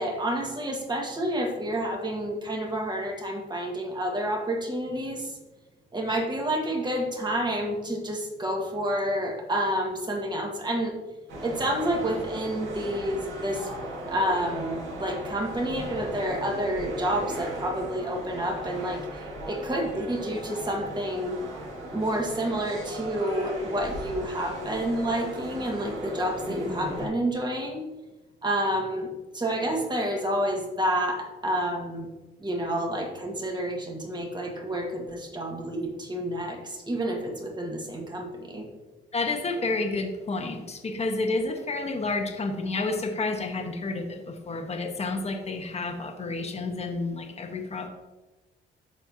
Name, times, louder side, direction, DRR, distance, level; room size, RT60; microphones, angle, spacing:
voice 1, 0.0-5.3 5.9-11.0 11.4-13.7 14.1-19.0 19.4-21.4 21.9-27.8 28.4-32.1 32.4-38.7, right 1 dB, 20° right, 1 dB, 1.9 m, -29 dB
sound 1, 11.3-27.1, right 1 dB, 75° right, 2.1 m, -37 dB
voice 2, 39.1-47.9, left 3 dB, 30° left, 3 dB, 1.2 m, -30 dB
13.0 x 4.4 x 2.9 m, 1.1 s
cardioid pair, 90°, 20 cm